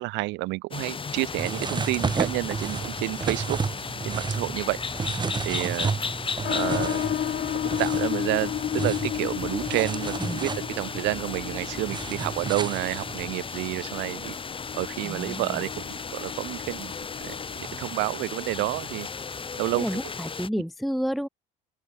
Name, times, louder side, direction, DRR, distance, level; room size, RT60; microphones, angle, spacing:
voice 1, 0.0-3.6 4.0-4.8 5.4-5.9 6.5-7.0 7.6-14.3 14.7-16.9 17.2-19.1 19.6-20.0, right 22 dB, 80° right, 1.6 m, -30 dB
sound 1, 0.7-20.5, left 5 dB, 30° left, 2.5 m, -36 dB
sound 2, 1.4-13.2, right 5 dB, 25° right, 1.2 m, -32 dB
sound 3, 6.4-17.6, left 11 dB, 55° left, 1.6 m, -33 dB
voice 2, 15.0-15.6 19.7-21.3, equal, ahead, 0.6 m, -30 dB
open air
supercardioid pair, 85°, 19 cm